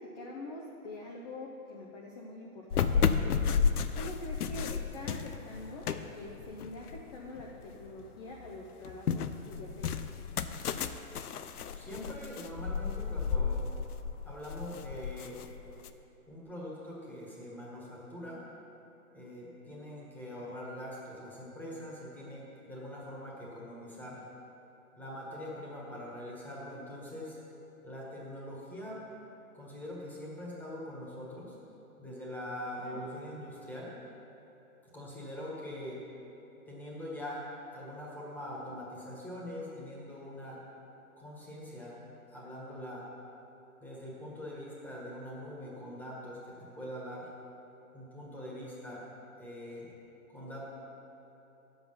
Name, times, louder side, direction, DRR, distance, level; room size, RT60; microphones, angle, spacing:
voice 1, 0.0-3.5 3.9-10.0 32.8-33.0, left 2 dB, 25° left, -2 dB, 0.7 m, -45 dB
sound 1, 2.7-7.9 8.3-15.9, left 6 dB, 90° left, 0.7 m, -33 dB
voice 2, 11.7-13.7 14.2-15.4 16.3-18.5 19.1-24.2 25.0-27.4 27.8-29.0 29.5-31.5 32.0-33.9 34.9-36.0 36.7-37.5 37.7-40.6 41.2-42.0 42.3-43.1 43.8-47.3 47.9-49.1 49.4-49.9 50.3-50.7, left 1 dB, 5° left, -5 dB, 1.6 m, -43 dB
10.5 x 7.9 x 5.8 m, 3.0 s
hypercardioid pair, 150°, 44 cm